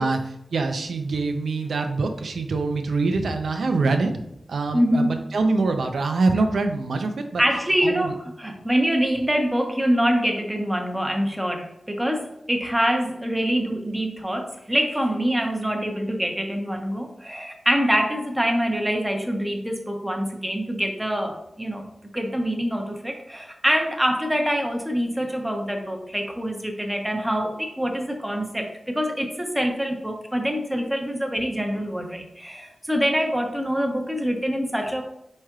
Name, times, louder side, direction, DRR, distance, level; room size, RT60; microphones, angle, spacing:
voice 1, 0.0-4.2 4.5-7.4 7.8-8.1, right 3 dB, 85° right, 5 dB, 0.6 m, -24 dB
voice 2, 4.7-5.3 7.4-21.8 22.1-35.0, equal, 10° right, 3 dB, 0.9 m, -25 dB
4.8 x 4.3 x 2.4 m, 0.83 s
cardioid pair, 60°, 0 cm